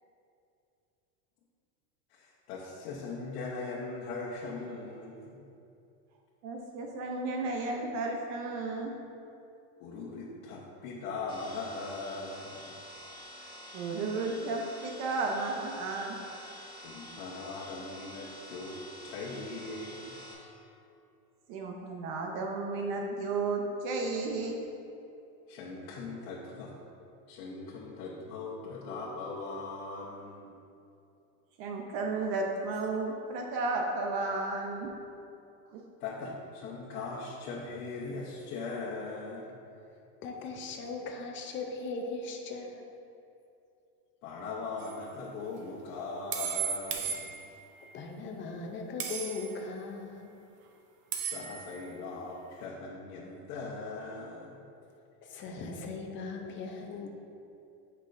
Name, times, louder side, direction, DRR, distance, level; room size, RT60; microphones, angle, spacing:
voice 1, 2.1-5.4 9.8-12.8 16.8-18.8 19.0-20.2 25.5-26.7 27.3-30.5 36.0-39.6 44.2-47.4 51.2-54.6, left 3 dB, 75° left, -6 dB, 1.1 m, -40 dB
voice 2, 6.4-8.9 13.7-16.2 21.5-24.6 31.6-34.9 35.7-35.8, right 3 dB, 50° right, 2 dB, 0.7 m, -33 dB
sound 1, 11.3-20.3, equal, 10° right, 1.4 m, -48 dB
voice 3, 40.2-42.9 47.9-50.4 55.2-57.1, left 3 dB, 25° left, 2 dB, 0.6 m, -39 dB
sound 2, 44.8-45.0 46.3-47.7 49.0-49.6 51.1-51.8, right 7 dB, 30° right, 0.3 m, -35 dB
8.4 x 5.4 x 2.6 m, 2.7 s
supercardioid pair, 150°, 45 cm